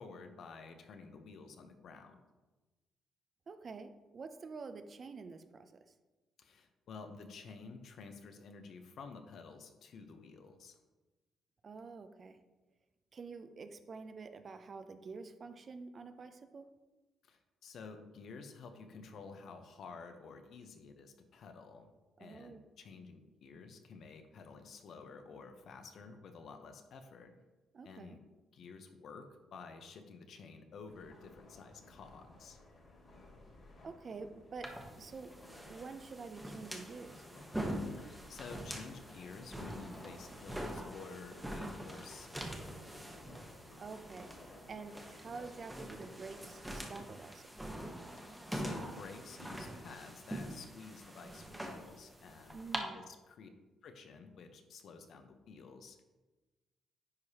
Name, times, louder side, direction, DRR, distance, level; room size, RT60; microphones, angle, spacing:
voice 1, 0.0-2.2 6.4-10.8 17.2-21.9 22.2-27.3 27.8-28.2 28.5-32.6 37.9-42.8 48.2-52.6 52.9-53.5 53.8-56.0, left 4 dB, 65° left, 7 dB, 0.7 m, -51 dB
voice 2, 3.5-5.9 11.6-12.4 13.1-16.7 22.2-22.6 27.7-28.2 33.8-35.4 35.7-37.2 43.8-44.4 44.7-47.7 52.5-53.0, right 4 dB, 45° right, 10 dB, 0.5 m, -48 dB
sound 1, 30.8-46.6, left 2 dB, 45° left, 2.1 m, -57 dB
sound 2, 34.6-52.8, right 1 dB, 5° right, 1.0 m, -44 dB
9.6 x 4.8 x 2.8 m, 1.2 s
cardioid pair, 90°, 0 cm